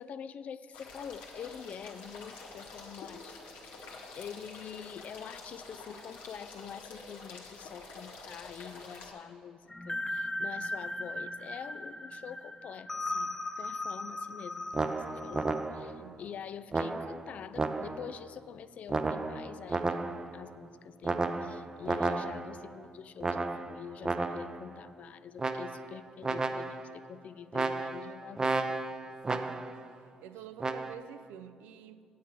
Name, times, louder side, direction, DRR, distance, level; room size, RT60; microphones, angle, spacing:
voice 1, 0.0-3.4 4.2-20.0 20.3-28.6, left 8 dB, 55° left, 0.4 m, -46 dB
sound 1, 0.7-9.1, left 3 dB, 85° left, 1.3 m, -48 dB
sound 2, 9.7-15.7, left 2 dB, 15° left, 0.6 m, -37 dB
sound 3, 14.7-16.0 16.7-18.2 18.9-20.4 21.0-22.6 23.2-24.6 25.4-26.0 26.2-27.0 27.5-29.8 30.6-30.9, right 3 dB, 25° right, 0.5 m, -33 dB
voice 2, 16.0-16.3 29.3-29.7 30.2-32.0, right 10 dB, 85° right, 0.4 m, -48 dB
8.5 x 7.2 x 5.8 m
supercardioid pair, 65°, 3 cm